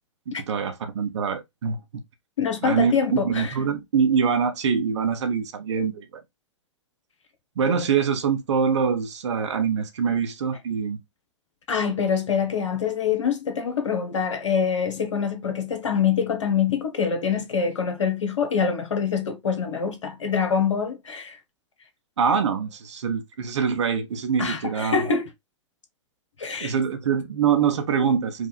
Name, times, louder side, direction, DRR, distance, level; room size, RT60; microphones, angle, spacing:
voice 1, 0.3-2.0 2.6-6.1 7.6-11.0 22.2-25.1 26.6-28.5, right 6 dB, 65° right, 1.3 m, -24 dB
voice 2, 2.4-3.5 11.7-21.4 24.4-25.3 26.4-26.7, left 6 dB, 75° left, 1.3 m, -25 dB
4.8 x 2.5 x 4.0 m
figure-of-eight pair, 110°, 16 cm